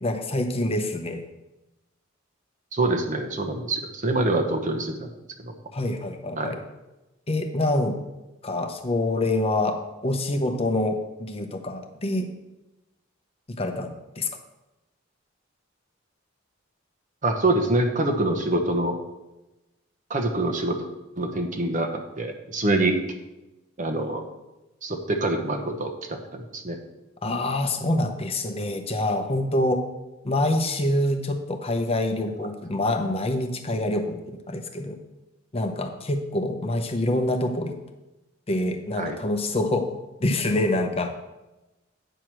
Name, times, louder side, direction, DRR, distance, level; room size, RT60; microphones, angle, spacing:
voice 1, 0.0-1.2 5.7-6.6 7.3-8.0 8.4-12.3 13.6-13.9 14.2-14.3 27.2-29.8 30.2-35.0 35.5-37.7 38.5-39.9 40.2-41.1, left 1 dB, 30° left, 5 dB, 0.8 m, -26 dB
voice 2, 2.7-5.1 5.4-5.5 6.3-6.6 17.2-19.0 20.1-20.9 21.2-23.0 23.8-24.2 24.8-26.8 39.0-39.2, right 2 dB, 40° right, 5 dB, 1.0 m, -25 dB
8.9 x 4.9 x 6.0 m, 1.0 s
head